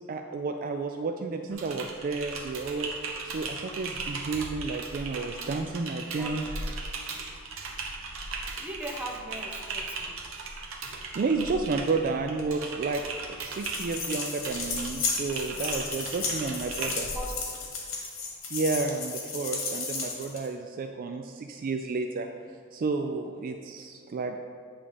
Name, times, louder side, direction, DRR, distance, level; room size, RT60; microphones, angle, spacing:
voice 1, 0.0-2.9 3.2-6.4 10.9-13.0 13.4-17.1 18.5-22.3 22.7-24.4, right 4 dB, 45° right, 5 dB, 0.3 m, -31 dB
Typing, 1.5-17.2, right 3 dB, 75° right, 0.9 m, -37 dB
voice 2, 8.6-10.2 16.8-17.6, equal, 5° right, -1 dB, 0.8 m, -39 dB
sound 1, 13.5-20.5, left 4 dB, 70° left, 1.5 m, -34 dB
8.6 x 3.7 x 5.2 m, 2.1 s
head